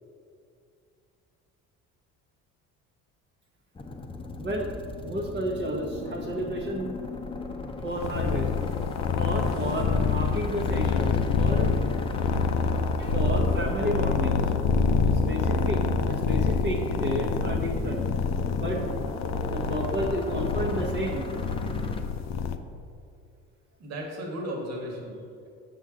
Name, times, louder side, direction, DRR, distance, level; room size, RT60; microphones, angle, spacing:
sound 1, 3.7-22.0, left 3 dB, 15° left, 0.7 m, -38 dB
voice 1, 4.4-4.7 5.0-6.9 7.8-8.5 9.2-11.8 13.0-14.4 15.0-18.0 18.5-18.8 19.5-21.3, equal, 35° right, -2 dB, 0.9 m, -31 dB
sound 2, 8.0-22.6, left 5 dB, 55° left, 0.6 m, -26 dB
voice 2, 23.8-25.5, equal, 55° right, -1 dB, 1.6 m, -35 dB
6.9 x 6.2 x 3.7 m, 2.5 s
supercardioid pair, 85°, 32 cm